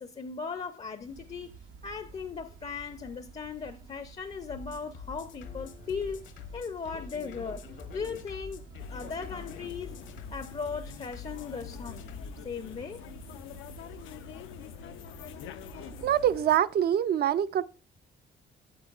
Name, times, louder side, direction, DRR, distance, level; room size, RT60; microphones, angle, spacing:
voice 1, 0.0-1.5 1.8-6.3 6.5-7.6 7.9-9.9 10.3-12.1 12.4-13.0, left 5 dB, 30° left, 0.5 m, -38 dB
sound 1, 1.0-16.4, right 5 dB, 85° right, 0.9 m, -51 dB
sound 2, 4.5-12.3, left 5 dB, 70° left, 0.9 m, -45 dB
sound 3, 8.8-16.6, left 11 dB, 85° left, 0.4 m, -46 dB
voice 2, 16.0-17.6, right 10 dB, 55° right, 0.4 m, -25 dB
8.5 x 8.2 x 2.4 m
cardioid pair, 90°, 20 cm